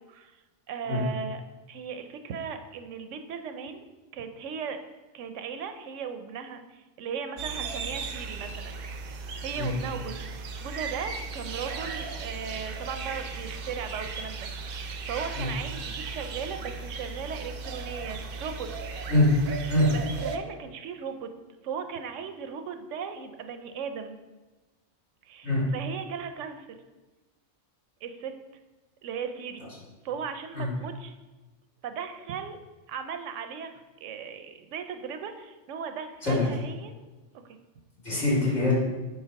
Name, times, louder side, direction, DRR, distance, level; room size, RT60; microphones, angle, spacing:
voice 1, 0.1-0.4 0.7-1.4 1.7-3.8 4.1-4.8 5.1-8.8 9.4-10.3 10.6-14.8 15.0-18.7 19.9-21.3 21.6-24.2 25.2-26.7 28.0-28.3 29.0-29.7 30.0-31.1 31.8-32.6 32.9-33.7 34.0-36.9, right 6 dB, 80° right, 8 dB, 0.9 m, -37 dB
sound 1, 7.4-20.4, right 4 dB, 60° right, 0.7 m, -36 dB
voice 2, 38.0-38.7, left 1 dB, 70° left, -8 dB, 2.9 m, -23 dB
9.0 x 3.1 x 4.6 m, 1.2 s
omnidirectional pair, 1.2 m